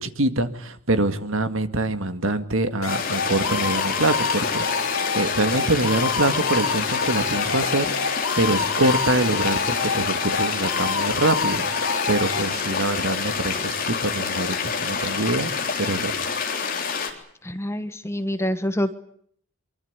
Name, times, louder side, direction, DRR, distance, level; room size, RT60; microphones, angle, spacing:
voice 1, 0.0-15.5 15.8-16.1, right 2 dB, 60° right, 10 dB, 2.1 m, -25 dB
sound 1, 2.8-12.4, left 5 dB, 70° left, 3.8 m, -28 dB
sound 2, 2.9-17.1, left 5 dB, 40° left, 3.8 m, -27 dB
voice 2, 17.4-18.9, equal, 10° left, 10 dB, 1.2 m, -26 dB
24.5 x 24.0 x 8.2 m, 0.65 s
head